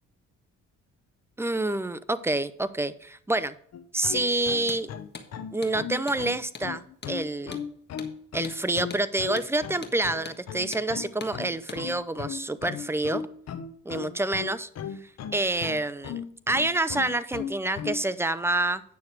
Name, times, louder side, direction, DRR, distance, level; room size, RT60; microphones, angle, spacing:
voice 1, 1.4-3.5 3.9-4.9 5.5-7.6 8.3-13.2 13.9-14.7 15.0-18.8, right 2 dB, 10° right, 14 dB, 0.6 m, -28 dB
sound 1, 3.7-18.0, left 8 dB, 55° left, 0.9 m, -37 dB
Hammer, 4.6-4.8 5.1-5.3 5.6-5.8 6.1-6.2 6.5-6.7 7.0-7.2 7.5-7.7 8.0-8.1 8.4-8.6 8.9-9.0 9.4-9.5 9.8-10.0 10.3-10.4 10.7-10.9 11.2-11.4 11.7-11.8, left 5 dB, 35° left, 1.5 m, -41 dB
9.5 x 6.4 x 4.6 m, 0.63 s
cardioid pair, 90°, 30 cm